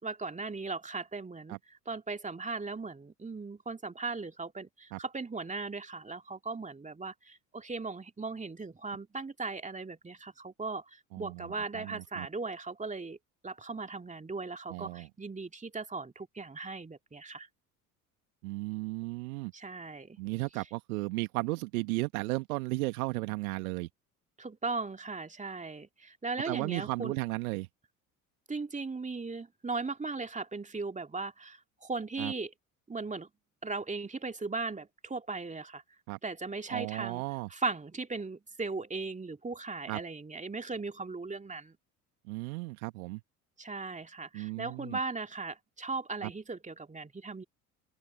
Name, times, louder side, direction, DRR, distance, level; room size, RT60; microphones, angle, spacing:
voice 1, 0.0-13.2 13.4-17.5 19.5-20.2 24.4-27.2 28.5-32.5 32.9-33.3 33.6-35.8 36.2-37.2 37.5-41.8 43.6-47.4, right 3 dB, 15° right, 2.6 m, -38 dB
voice 2, 11.1-12.3 14.7-15.1 18.4-19.5 20.2-23.9 26.5-27.7 32.2-32.3 36.1-36.2 36.7-37.5 39.9-40.0 42.3-43.2 44.3-45.0 46.2-46.3, right 23 dB, 65° right, 1.6 m, -35 dB
figure-of-eight pair, 60°, 45 cm